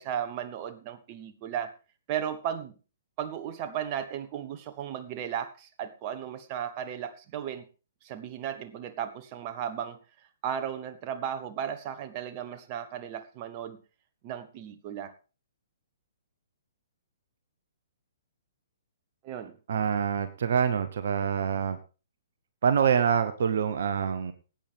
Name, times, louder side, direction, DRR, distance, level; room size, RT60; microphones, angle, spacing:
voice 1, 0.0-1.7 2.1-2.8 3.2-7.7 8.0-10.0 10.4-13.8 14.2-15.1 19.2-19.6, right 9 dB, 35° right, 9 dB, 1.2 m, -35 dB
voice 2, 19.7-21.8 22.6-24.3, right 7 dB, 60° right, 10 dB, 0.9 m, -26 dB
19.0 x 8.8 x 3.5 m, 0.34 s
figure-of-eight pair, 125°, 0 cm